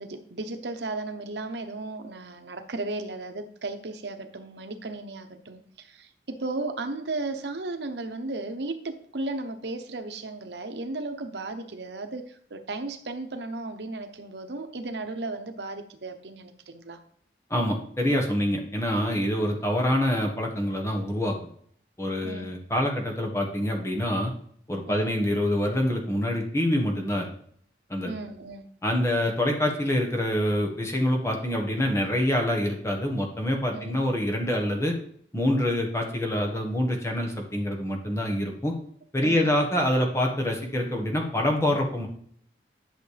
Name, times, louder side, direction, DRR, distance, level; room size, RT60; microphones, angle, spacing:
voice 1, 0.0-17.0 22.2-22.5 24.9-25.1 28.0-28.7 33.7-33.9 39.2-39.5, right 2 dB, 85° right, 7 dB, 0.9 m, -35 dB
voice 2, 17.5-21.4 22.0-24.3 24.7-27.3 27.9-28.1 28.8-35.0 35.3-38.7 39.1-42.1, left 1 dB, 15° left, 1 dB, 1.3 m, -26 dB
11.0 x 6.4 x 3.4 m, 0.64 s
head